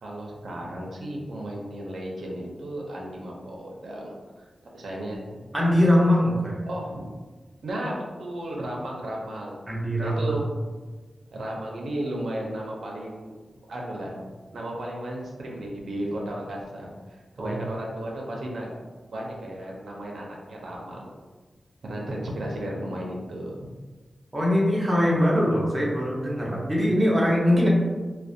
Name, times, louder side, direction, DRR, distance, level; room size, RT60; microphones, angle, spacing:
voice 1, 0.0-4.1 4.7-5.5 6.6-7.1 7.6-9.6 10.0-10.7 11.3-13.3 13.7-14.2 14.5-18.7 19.1-21.1 21.8-23.7, right 1 dB, 85° right, -2 dB, 0.4 m, -34 dB
voice 2, 5.5-6.6 9.7-10.3 17.4-17.6 24.3-27.7, equal, 15° right, -5 dB, 0.5 m, -22 dB
2.4 x 2.0 x 2.6 m, 1.3 s
wide cardioid pair, 130°, 0 cm